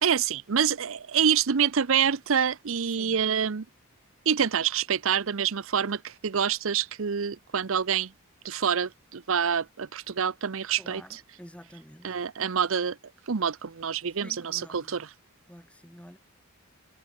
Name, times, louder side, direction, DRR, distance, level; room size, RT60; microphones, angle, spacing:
voice 1, 0.0-3.6 4.3-8.1 8.4-11.2 12.0-13.0 13.3-15.1, right 7 dB, 65° right, 0.7 m, -26 dB
voice 2, 2.9-3.2 10.8-12.1 14.2-15.0 15.5-16.2, equal, 5° left, 2.8 m, -49 dB
head